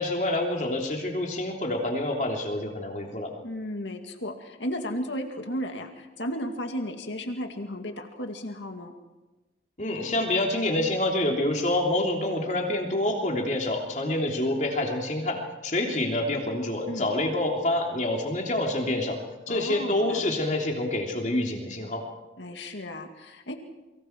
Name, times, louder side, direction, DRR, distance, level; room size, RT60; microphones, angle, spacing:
voice 1, 0.0-3.3 9.8-19.2 19.5-22.0, left 1 dB, 40° left, 1 dB, 3.2 m, -27 dB
voice 2, 3.4-8.9 16.9-17.1 19.5-20.3 22.4-23.6, equal, 90° left, 4 dB, 2.2 m, -34 dB
30.0 x 24.5 x 4.6 m, 1.1 s
head